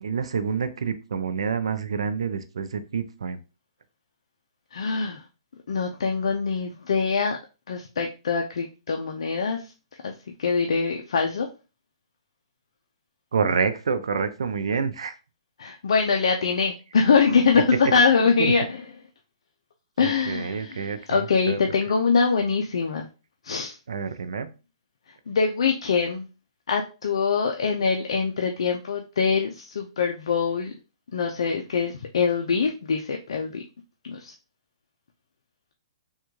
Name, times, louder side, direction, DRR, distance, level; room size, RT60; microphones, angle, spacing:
voice 1, 0.0-3.4 13.3-15.1 18.4-18.5 20.0-21.6 23.9-24.5, right 5 dB, 85° right, 10 dB, 0.5 m, -27 dB
voice 2, 4.7-5.2 5.7-7.4 7.7-9.7 10.0-11.5 15.6-18.8 20.0-23.1 23.4-23.8 25.3-26.3 26.7-30.7 31.1-33.6 34.0-34.3, left 5 dB, 75° left, 3 dB, 0.4 m, -24 dB
3.5 x 2.3 x 3.0 m, 0.32 s
hypercardioid pair, 150°, 3 cm